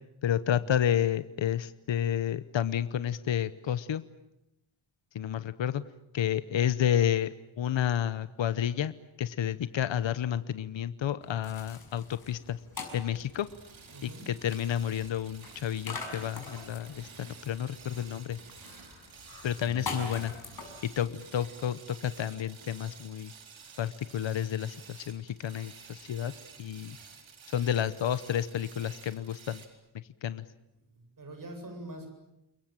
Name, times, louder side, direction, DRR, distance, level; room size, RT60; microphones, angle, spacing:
voice 1, 0.2-4.0 5.1-5.8 6.1-8.9 9.2-12.6 12.9-13.5 14.3-18.4 19.4-20.3 21.0-23.3 23.8-26.3 26.6-27.0 27.5-29.6 30.2-30.4, left 10 dB, 70° left, 14 dB, 1.0 m, -30 dB
sound 1, 11.2-21.3, left 4 dB, 50° left, 6.4 m, -44 dB
sound 2, 12.7-29.7, right 6 dB, 75° right, 4.2 m, -52 dB
voice 2, 13.9-14.3 19.6-20.5 26.8-27.0 30.9-32.1, right 1 dB, 45° right, 5 dB, 7.9 m, -45 dB
29.5 x 22.0 x 9.0 m, 0.87 s
wide cardioid pair, 125°, 47 cm